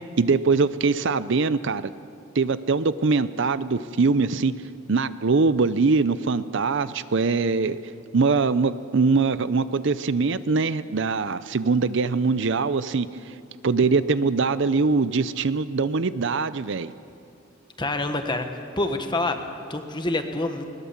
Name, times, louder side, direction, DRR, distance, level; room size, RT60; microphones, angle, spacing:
voice 1, 0.2-1.9 2.3-4.5 4.9-7.8 8.1-13.1 13.6-16.9, right 4 dB, 60° right, 14 dB, 0.6 m, -22 dB
voice 2, 17.8-18.5 18.8-20.6, left 2 dB, 20° left, 6 dB, 1.3 m, -27 dB
21.0 x 20.5 x 7.3 m, 2.5 s
head